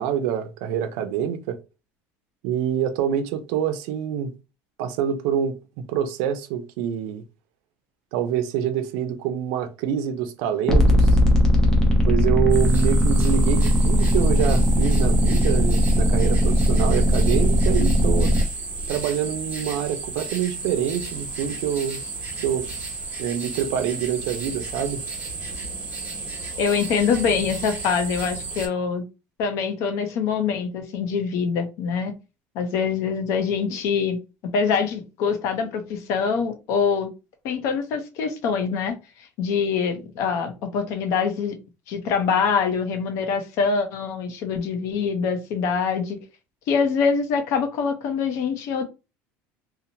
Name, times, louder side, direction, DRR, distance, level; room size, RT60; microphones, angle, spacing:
voice 1, 0.0-1.6 2.4-4.3 4.8-7.2 8.1-11.2 12.1-18.3 18.9-22.0 22.4-22.7 23.2-25.0, right 9 dB, 80° right, 0.4 m, -26 dB
sound 1, 10.7-18.4, equal, 10° left, 0.6 m, -18 dB
sound 2, 12.5-28.7, right 3 dB, 25° right, 1.0 m, -33 dB
voice 2, 26.6-29.0 29.4-32.1 32.5-34.2 34.5-37.1 37.4-38.9 39.4-41.6 41.9-46.2 46.7-48.8, left 6 dB, 60° left, 0.6 m, -24 dB
2.8 x 2.0 x 2.7 m
cardioid pair, 155°, 6 cm